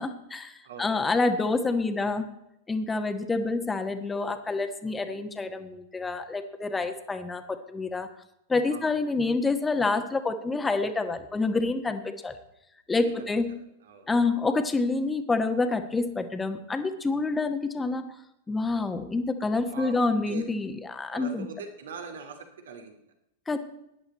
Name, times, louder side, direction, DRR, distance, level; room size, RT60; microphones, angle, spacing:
voice 1, 0.0-2.3 2.7-8.1 8.5-12.3 12.9-13.5 14.1-18.0 18.5-21.5 23.5-23.6, left 3 dB, 15° left, 9 dB, 1.5 m, -27 dB
voice 2, 0.6-1.1 8.7-8.9 13.0-14.1 19.7-20.0 20.3-20.4 21.1-23.0, right 4 dB, 65° right, 6 dB, 2.5 m, -42 dB
18.0 x 11.0 x 4.2 m, 0.84 s
figure-of-eight pair, 95°, 0 cm